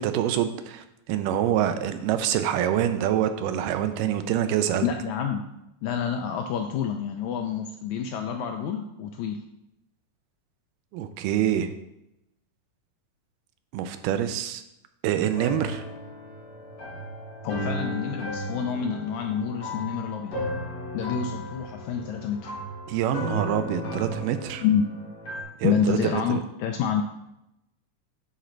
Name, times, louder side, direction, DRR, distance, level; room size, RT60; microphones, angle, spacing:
voice 1, 0.0-4.9 10.9-11.7 13.7-14.6 15.0-15.8 22.9-24.6 25.6-26.4, right 10 dB, 85° right, 9 dB, 2.2 m, -26 dB
voice 2, 4.8-5.4 5.8-9.4 17.4-20.3 20.9-22.5 24.6-24.8 25.6-27.0, left 7 dB, 80° left, 4 dB, 1.7 m, -28 dB
sound 1, 15.3-25.4, equal, 50° left, 2.3 m, -35 dB
10.0 x 4.3 x 3.8 m, 0.86 s
omnidirectional pair, 3.8 m